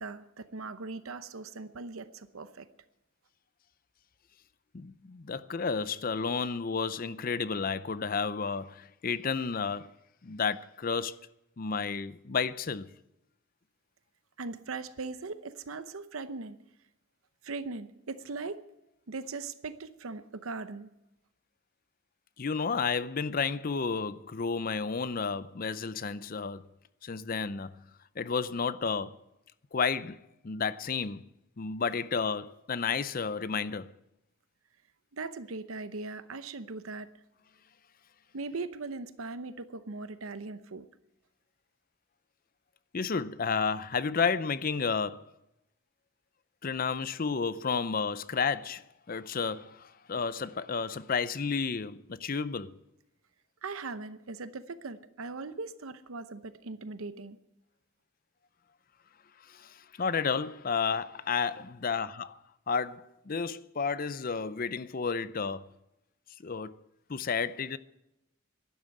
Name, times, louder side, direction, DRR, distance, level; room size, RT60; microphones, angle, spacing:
voice 1, 0.0-2.7 14.4-16.6 17.4-18.6 19.1-20.9 35.1-37.1 38.3-40.8 53.6-57.4, right 3 dB, 85° right, 0.8 m, -39 dB
voice 2, 4.7-9.9 10.2-11.2 11.6-12.9 22.4-26.6 27.0-27.8 28.2-29.2 29.7-30.2 30.4-31.2 31.6-33.9 42.9-45.3 46.6-52.7 59.5-62.4 62.7-65.7 66.4-66.8 67.1-67.8, left 5 dB, 45° left, 0.5 m, -31 dB
12.0 x 11.0 x 8.6 m
head